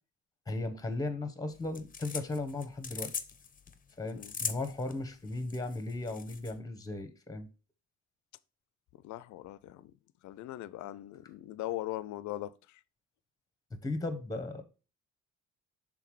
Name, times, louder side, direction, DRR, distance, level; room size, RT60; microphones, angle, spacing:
voice 1, 0.5-3.1 4.0-7.5 13.7-14.6, left 2 dB, 10° left, 1.0 m, -36 dB
sound 1, 1.5-6.5, left 6 dB, 25° left, 0.6 m, -41 dB
voice 2, 4.0-4.3 8.9-9.9 10.2-12.8, left 15 dB, 70° left, 0.4 m, -40 dB
5.7 x 3.8 x 4.7 m
cardioid pair, 90°, 30 cm